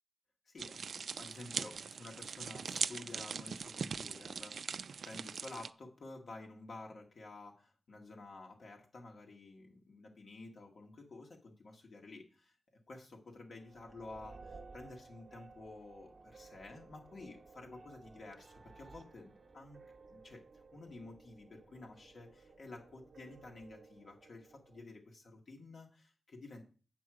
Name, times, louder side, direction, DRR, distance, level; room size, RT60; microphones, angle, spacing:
voice 1, 0.5-12.6 12.9-19.8 20.1-20.4 20.7-26.6, left 2 dB, 65° left, 1 dB, 1.9 m, -51 dB
sound 1, 0.6-5.7, right 6 dB, 70° right, 0.4 m, -41 dB
sound 2, 13.5-24.8, right 4 dB, 55° right, 1.0 m, -57 dB
8.7 x 6.3 x 4.8 m, 0.38 s
wide cardioid pair, 115°, 0 cm